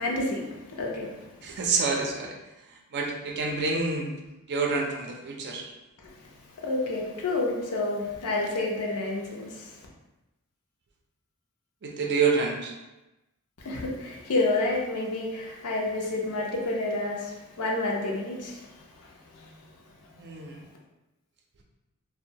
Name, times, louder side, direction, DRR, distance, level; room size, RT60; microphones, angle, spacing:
voice 1, 0.0-1.5 6.0-6.1 6.6-9.7 13.6-18.7 19.0-19.6, left 2 dB, 75° left, -1 dB, 0.6 m, -30 dB
voice 2, 1.4-2.4 2.9-4.1 4.5-5.7 11.8-12.7 20.2-20.7, right 4 dB, 50° right, 1 dB, 0.4 m, -27 dB
2.6 x 2.1 x 2.8 m, 1.0 s
head